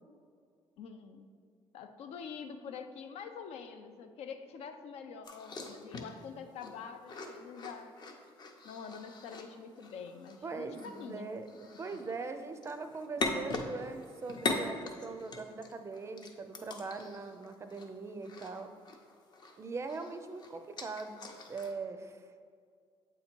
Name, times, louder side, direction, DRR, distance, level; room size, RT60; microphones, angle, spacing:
voice 1, 0.8-1.3 1.7-8.0 8.6-11.3 11.9-12.0, left 6 dB, 85° left, 8 dB, 0.4 m, -46 dB
sound 1, 5.2-19.6 19.9-21.7, left 2 dB, 45° left, 0.6 m, -41 dB
voice 2, 10.4-11.5 11.8-18.7 19.6-22.3, right 4 dB, 25° right, 8 dB, 0.4 m, -41 dB
8.0 x 2.8 x 4.4 m, 2.1 s
cardioid pair, 130°, 11 cm